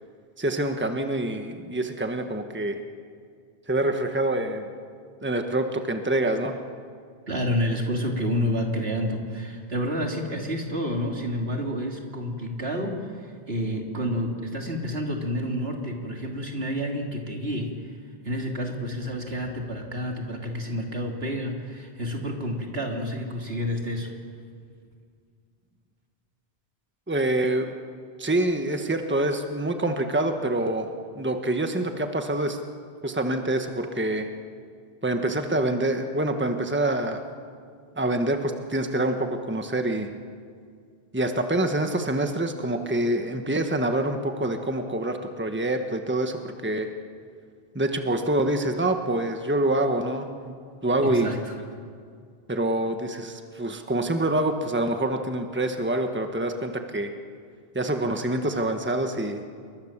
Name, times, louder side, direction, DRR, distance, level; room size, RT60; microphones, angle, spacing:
voice 1, 0.4-2.8 3.7-4.7 5.2-6.5 27.1-27.7 28.2-30.9 31.2-32.6 33.0-34.3 35.0-37.2 38.0-40.1 41.1-46.9 47.7-50.5 50.8-51.3 52.5-57.1 57.7-59.4, right 1 dB, 10° right, 5 dB, 1.4 m, -26 dB
voice 2, 7.3-17.7 18.2-24.1 51.0-51.5, equal, 75° right, 1 dB, 3.3 m, -29 dB
28.5 x 22.5 x 7.4 m, 2.2 s
omnidirectional pair, 1.0 m